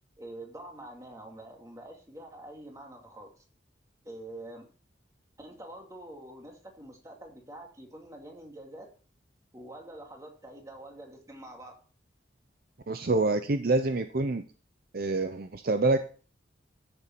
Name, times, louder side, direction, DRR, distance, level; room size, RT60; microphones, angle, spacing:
voice 1, 0.2-3.4 4.0-4.7 5.4-8.9 9.5-11.8, right 1 dB, 20° right, 1 dB, 2.3 m, -46 dB
voice 2, 12.9-14.4 14.9-16.0, right 3 dB, 55° right, 8 dB, 0.7 m, -26 dB
13.5 x 7.0 x 4.5 m, 0.40 s
head